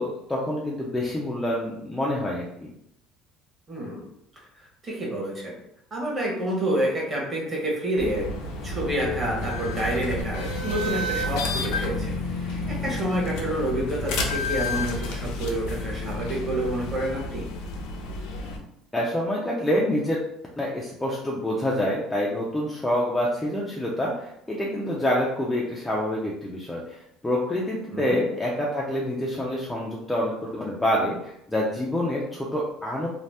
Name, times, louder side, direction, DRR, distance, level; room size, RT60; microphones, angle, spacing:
voice 1, 0.0-2.7 18.9-20.2 20.6-33.1, left 1 dB, 5° left, -4 dB, 0.3 m, -27 dB
voice 2, 3.7-4.1 4.6-5.6 5.9-8.3 8.6-17.5 27.9-28.2, right 1 dB, 20° right, -3 dB, 0.9 m, -28 dB
sound 1, 8.0-18.6, left 2 dB, 80° left, 0.5 m, -30 dB
2.7 x 2.0 x 3.2 m, 0.78 s
cardioid pair, 160°, 0 cm